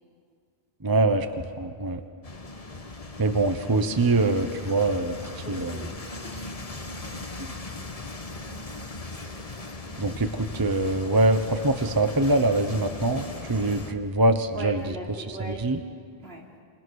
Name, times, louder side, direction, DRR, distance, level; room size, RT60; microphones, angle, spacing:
voice 1, 0.8-1.3 1.6-2.0 3.2-5.1 5.5-5.7 10.0-13.2 13.5-14.8 15.6-15.8, right 2 dB, 20° right, 8 dB, 0.9 m, -23 dB
sound 1, 2.2-13.9, left 2 dB, 35° left, 1.4 m, -38 dB
voice 2, 5.4-5.9 6.2-6.6 14.5-15.7 16.2-16.4, right 1 dB, 70° right, -3 dB, 4.4 m, -38 dB
28.5 x 27.5 x 6.4 m, 2.2 s
omnidirectional pair, 1.1 m